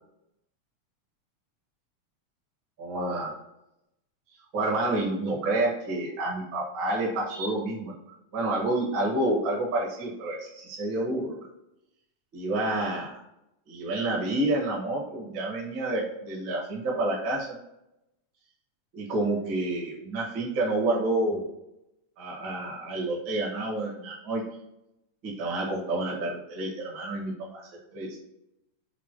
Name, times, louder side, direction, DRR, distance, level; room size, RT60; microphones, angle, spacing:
voice 1, 2.8-3.4 4.5-11.5 12.3-13.2 13.7-17.6 18.9-21.5 22.2-24.4 25.2-28.2, right 2 dB, 45° right, -4 dB, 2.1 m, -29 dB
6.2 x 3.9 x 4.5 m, 0.86 s
omnidirectional pair, 3.5 m